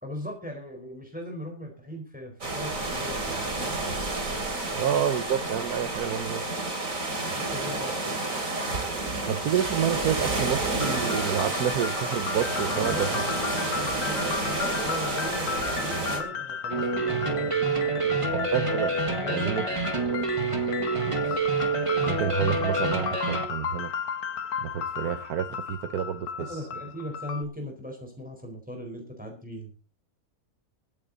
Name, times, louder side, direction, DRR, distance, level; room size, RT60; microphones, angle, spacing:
voice 1, 0.0-3.8 4.7-5.0 7.3-8.4 12.7-13.2 13.6-18.3 19.2-19.5 26.4-29.7, equal, 5° right, 2 dB, 4.4 m, -39 dB
sound 1, 2.4-16.2, right 2 dB, 60° right, 3.6 m, -30 dB
voice 2, 4.3-6.5 9.3-13.1 18.3-19.7 21.0-21.4 22.0-23.9 24.6-26.7, right 9 dB, 90° right, 9 dB, 1.4 m, -29 dB
sound 2, 10.8-27.4, left 7 dB, 85° left, 1.6 m, -34 dB
sound 3, 16.7-23.5, right 3 dB, 20° right, 1.8 m, -27 dB
23.0 x 8.5 x 4.0 m, 0.35 s
omnidirectional pair, 1.6 m